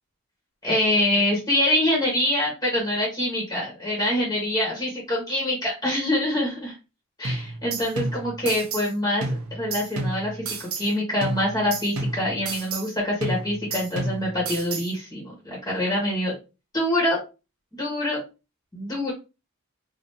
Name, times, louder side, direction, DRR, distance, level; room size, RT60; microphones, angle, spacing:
voice 1, 0.6-6.7 7.2-9.3 9.5-16.4 16.7-17.2 17.7-18.2 18.7-19.1, left 1 dB, 15° left, -4 dB, 1.3 m, -25 dB
sound 1, 7.2-8.9 9.2-10.9 11.2-12.9 13.2-14.9, right 2 dB, 75° right, 0.7 m, -31 dB
3.3 x 2.7 x 2.7 m, 0.28 s
head